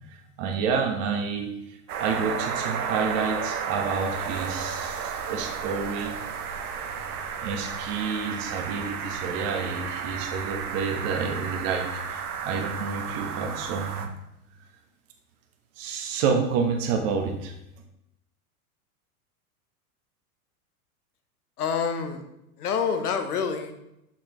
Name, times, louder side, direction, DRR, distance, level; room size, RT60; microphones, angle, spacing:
voice 1, 0.1-1.5 2.0-6.2 7.4-14.1 15.8-17.5, right 5 dB, 55° right, 3 dB, 1.2 m, -29 dB
sound 1, 1.9-14.1, right 7 dB, 75° right, 1.0 m, -33 dB
voice 2, 21.6-22.2 22.6-23.7, left 6 dB, 80° left, 7 dB, 1.0 m, -27 dB
6.6 x 5.9 x 3.0 m, 0.84 s
hypercardioid pair, 100°, 45 cm